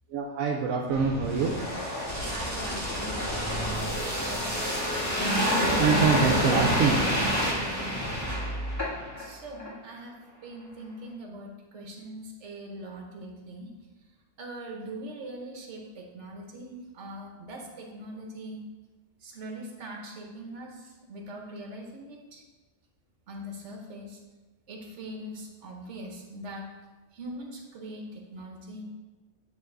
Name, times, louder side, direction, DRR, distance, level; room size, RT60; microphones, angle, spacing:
voice 1, 0.1-1.5 5.5-7.0, right 5 dB, 80° right, 0 dB, 1.1 m, -25 dB
sound 1, 0.9-9.3 9.6-9.7, equal, 10° left, 1.5 m, -28 dB
voice 2, 2.2-5.0 9.1-10.2 10.4-13.7 14.4-18.6 19.2-22.4 23.3-24.2 24.7-26.7 27.1-28.8, right 1 dB, 60° right, 1 dB, 1.3 m, -42 dB
9.3 x 3.3 x 3.8 m, 1.2 s
omnidirectional pair, 1.4 m